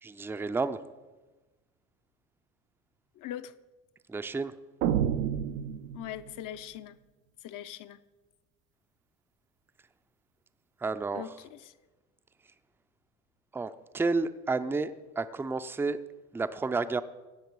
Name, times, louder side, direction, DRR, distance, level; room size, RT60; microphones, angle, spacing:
voice 1, 0.0-0.8 4.1-4.5 10.8-11.3 13.5-16.0 16.3-17.0, right 3 dB, 5° right, 11 dB, 0.4 m, -31 dB
voice 2, 3.2-3.5 5.9-7.0 7.4-8.0 11.1-11.6, left 11 dB, 50° left, 13 dB, 0.6 m, -41 dB
sound 1, 4.8-6.4, right 9 dB, 85° right, 0.6 m, -29 dB
16.0 x 6.5 x 4.7 m, 1.2 s
hypercardioid pair, 65°, 42 cm